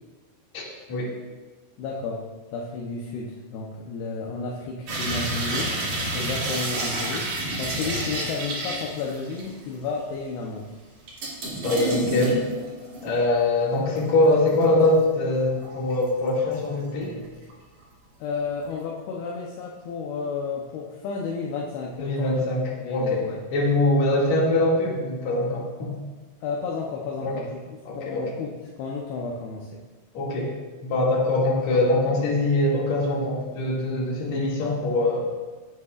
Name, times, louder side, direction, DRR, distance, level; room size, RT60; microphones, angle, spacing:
voice 1, 1.8-2.3 2.5-5.8 6.1-10.7 18.2-22.4 22.8-23.4 26.4-27.6 28.0-29.8, left 4 dB, 75° left, -2 dB, 2.4 m, -32 dB
sound 1, 4.9-9.6 10.0-10.1 11.1-13.3 13.7-15.0 15.4-16.6 17.0-17.5 17.8-17.9, right 1 dB, 45° right, 3.3 m, -30 dB
voice 2, 11.6-12.4 13.0-17.2 22.0-25.9 27.2-27.4 27.8-28.3 30.1-30.5 30.8-35.3, left 2 dB, 45° left, -4 dB, 2.8 m, -23 dB
16.5 x 9.4 x 2.4 m, 1.3 s
omnidirectional pair, 5.5 m